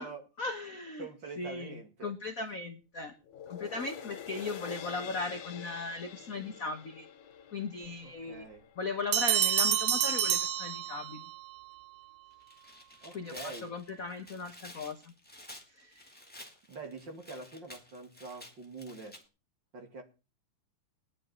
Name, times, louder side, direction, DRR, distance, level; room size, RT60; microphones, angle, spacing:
voice 1, 0.4-1.1 1.4-3.1 3.5-7.1 7.5-8.5 8.8-11.2 13.1-15.1 15.8-16.0, left 3 dB, 60° left, 6 dB, 0.8 m, -38 dB
voice 2, 1.0-2.1 8.0-8.6 13.0-13.7 16.7-19.2 19.7-20.0, right 4 dB, 40° right, 5 dB, 2.6 m, -45 dB
sound 1, 3.2-9.8 10.3-10.4, left 8 dB, 80° left, 2.5 m, -47 dB
Bell, 9.1-11.4, right 10 dB, 80° right, 2.5 m, -28 dB
Tearing, 12.3-19.2, left 1 dB, 5° left, 1.9 m, -51 dB
19.5 x 10.5 x 4.3 m, 0.32 s
omnidirectional pair, 3.5 m